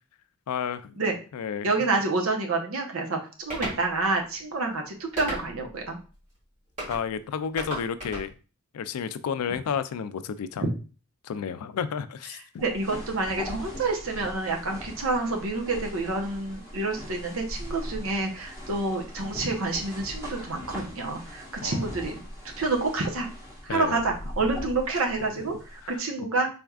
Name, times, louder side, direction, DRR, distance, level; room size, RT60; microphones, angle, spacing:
voice 1, 0.5-0.9 1.3-1.7 6.9-8.3 8.7-10.6 11.2-12.6 21.6-21.9 23.7-24.0 25.2-25.3 26.2-26.3, left 7 dB, 90° left, 0.4 m, -31 dB
voice 2, 1.6-6.0 12.6-22.1 22.6-23.3 23.6-26.5, right 3 dB, 70° right, 0.9 m, -28 dB
sound 1, 3.5-3.8 5.2-5.7 6.8-7.0 7.6-8.3, right 1 dB, 35° right, 2.0 m, -34 dB
sound 2, 12.6-26.0, equal, 15° right, 1.2 m, -41 dB
4.2 x 3.4 x 2.3 m
head